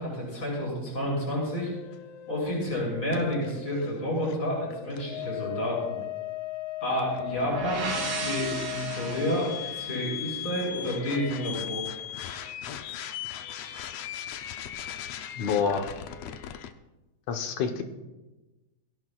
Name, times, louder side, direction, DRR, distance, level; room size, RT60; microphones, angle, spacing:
voice 1, 0.0-1.7 2.3-6.0 6.8-7.9 8.2-11.8, equal, 25° left, -4 dB, 7.2 m, -30 dB
sound 1, 1.6-16.7, left 13 dB, 85° left, 1.4 m, -38 dB
sound 2, 7.1-10.9, right 3 dB, 60° right, 3.7 m, -36 dB
voice 2, 15.4-15.9 17.3-17.8, left 6 dB, 65° left, 5 dB, 2.2 m, -27 dB
22.0 x 17.0 x 2.4 m, 1.1 s
omnidirectional pair, 3.9 m